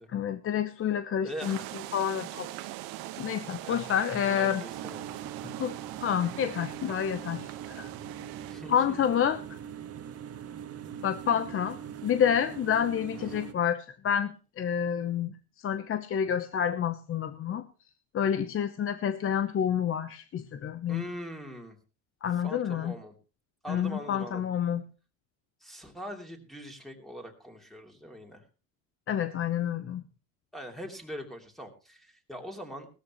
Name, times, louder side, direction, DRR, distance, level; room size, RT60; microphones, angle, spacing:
voice 1, 0.1-1.6 1.9-2.5 3.2-4.6 5.4-7.9 8.7-9.4 11.0-17.7 18.1-21.0 22.2-22.9 23.7-24.8 29.1-30.0, left 8 dB, 35° left, 11 dB, 0.9 m, -29 dB
voice 2, 1.2-1.7 3.6-3.9 4.3-5.0 8.5-9.0 13.1-13.5 20.9-21.8 22.4-23.1 23.6-24.4 25.6-28.5 30.5-32.9, equal, ahead, 0 dB, 2.9 m, -42 dB
sound 1, 1.4-8.5, right 16 dB, 65° right, 1.4 m, -42 dB
sound 2, 4.7-13.5, right 9 dB, 40° right, 1.6 m, -42 dB
18.0 x 13.5 x 3.1 m, 0.33 s
supercardioid pair, 115°, 39 cm